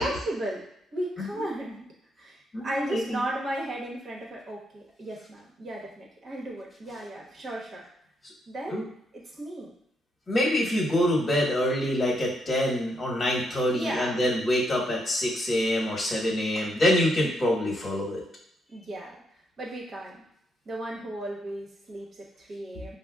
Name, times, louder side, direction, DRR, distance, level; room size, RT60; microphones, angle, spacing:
voice 1, 0.0-1.9 2.2-7.8 8.5-8.8 9.1-9.7 13.7-14.2 18.7-19.2 19.6-20.2 20.6-23.0, right 1 dB, 50° right, -2 dB, 1.1 m, -35 dB
voice 2, 2.5-3.2 8.7-8.8 10.3-18.2 22.7-23.0, left 1 dB, 30° left, -3 dB, 1.2 m, -26 dB
5.1 x 2.2 x 2.3 m, 0.72 s
cardioid pair, 90°, 0 cm